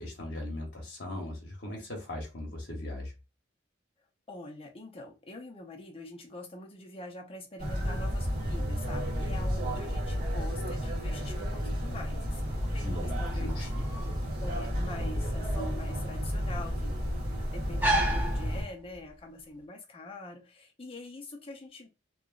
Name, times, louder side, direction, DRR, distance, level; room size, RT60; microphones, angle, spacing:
voice 1, 0.0-3.1 12.8-13.7, left 1 dB, 55° left, 1 dB, 1.0 m, -39 dB
voice 2, 4.3-13.9 14.4-16.9 17.5-21.9, left 2 dB, 30° left, 1 dB, 0.6 m, -44 dB
sound 1, 7.6-18.6, equal, 50° right, 1.3 m, -32 dB
sound 2, 12.2-19.2, right 1 dB, 10° right, 0.5 m, -35 dB
2.9 x 2.4 x 2.4 m, 0.28 s
head